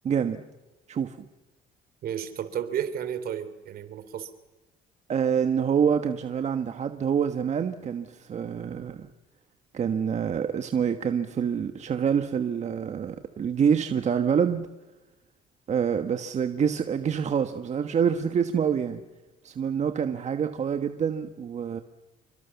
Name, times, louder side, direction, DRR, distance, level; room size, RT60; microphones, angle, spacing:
voice 1, 0.0-0.5 0.9-1.2 5.1-9.1 9.7-14.7 15.7-19.0 19.4-21.8, right 7 dB, 45° right, 7 dB, 1.4 m, -26 dB
voice 2, 2.0-4.3, right 9 dB, 65° right, 12 dB, 3.2 m, -32 dB
28.0 x 24.0 x 7.1 m, 1.1 s
cardioid pair, 110°, 17 cm